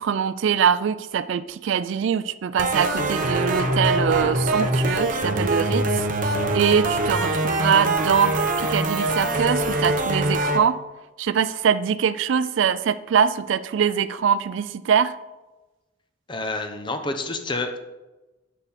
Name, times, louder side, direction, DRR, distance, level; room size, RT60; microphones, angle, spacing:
voice 1, 0.0-10.8 11.2-15.1, right 7 dB, 70° right, 14 dB, 0.3 m, -23 dB
sound 1, 2.6-10.6, right 2 dB, 40° right, 0.9 m, -23 dB
voice 2, 16.3-17.8, left 2 dB, 25° left, 7 dB, 0.8 m, -28 dB
8.4 x 8.1 x 4.2 m, 1.1 s
head